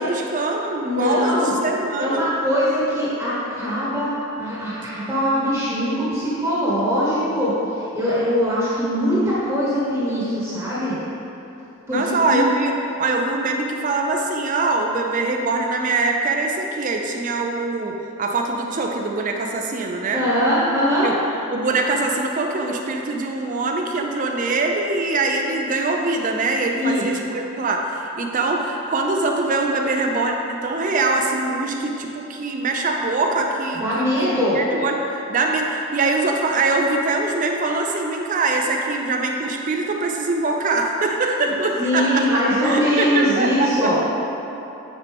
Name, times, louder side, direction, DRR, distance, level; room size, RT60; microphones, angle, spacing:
voice 1, 0.0-2.2 11.9-12.7 13.0-20.2 21.0-21.1 21.5-34.1 34.5-44.0, right 3 dB, 35° right, 2 dB, 0.5 m, -23 dB
voice 2, 0.8-1.5 2.0-11.0 11.9-12.4 20.1-21.3 26.8-27.0 33.8-34.6 41.4-41.5 41.8-44.0, equal, 10° right, -9 dB, 1.2 m, -22 dB
8.9 x 4.4 x 3.5 m, 2.9 s
head